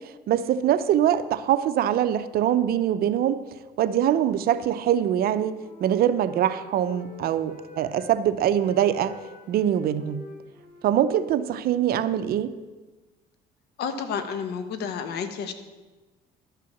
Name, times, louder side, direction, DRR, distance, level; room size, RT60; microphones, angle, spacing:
voice 1, 0.3-3.4 3.8-5.5 5.8-9.2 9.5-10.2 10.8-12.5, right 10 dB, 65° right, 13 dB, 0.6 m, -23 dB
Wind instrument woodwind instrument, 4.8-8.1 8.5-12.4, left 2 dB, 55° left, 2.3 m, -46 dB
voice 2, 13.8-15.5, left 6 dB, 75° left, 9 dB, 1.2 m, -30 dB
12.0 x 5.8 x 7.1 m, 1.2 s
cardioid pair, 110°, 17 cm